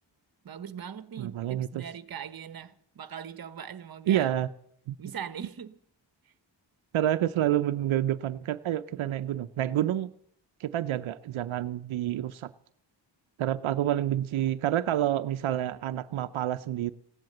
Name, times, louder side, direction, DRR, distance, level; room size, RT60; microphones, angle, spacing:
voice 1, 0.4-4.3 5.0-5.8 6.2-6.3, right 8 dB, 50° right, 1.0 m, -41 dB
voice 2, 1.2-1.8 4.1-4.5 4.9-5.0 6.9-10.1 10.6-12.5 13.4-16.9, right 12 dB, 85° right, 0.6 m, -28 dB
16.0 x 10.5 x 7.7 m
wide cardioid pair, 125°, 47 cm